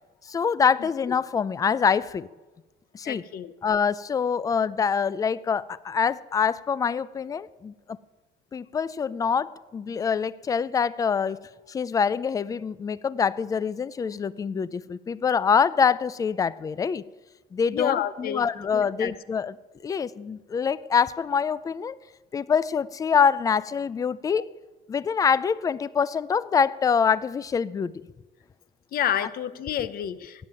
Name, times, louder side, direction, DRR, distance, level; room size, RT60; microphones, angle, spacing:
voice 1, 0.2-2.3 2.9-3.2 3.6-8.0 8.5-17.0 17.5-19.5 19.8-22.0 22.3-24.5 24.9-27.9, left 6 dB, 20° left, 19 dB, 0.4 m, -25 dB
voice 2, 3.0-3.5 17.7-18.5 18.7-19.1 24.4-24.5 28.9-30.5, left 10 dB, 55° left, 15 dB, 0.8 m, -29 dB
17.0 x 7.5 x 9.0 m, 1.2 s
cardioid pair, 155°, 18 cm